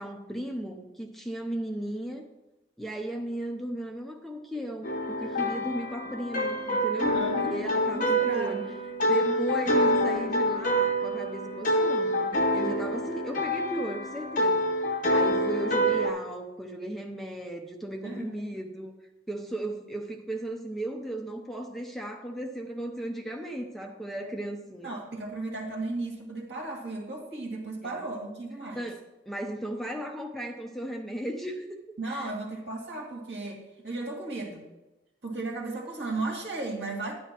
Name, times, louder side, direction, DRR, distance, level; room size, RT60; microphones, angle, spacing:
voice 1, 0.0-2.3 2.8-8.6 9.0-14.7 15.1-18.9 19.3-25.0 27.8-28.1 28.8-31.7 32.0-32.3, right 1 dB, ahead, 2 dB, 0.7 m, -36 dB
sound 1, 4.8-16.1, equal, 50° left, 1.1 m, -27 dB
voice 2, 6.9-7.6 7.9-8.7 9.1-9.5 18.0-18.4 24.2-24.3 24.8-28.8 32.0-34.6 35.2-37.1, right 2 dB, 70° right, -1 dB, 2.3 m, -35 dB
10.0 x 10.0 x 3.0 m, 0.99 s
head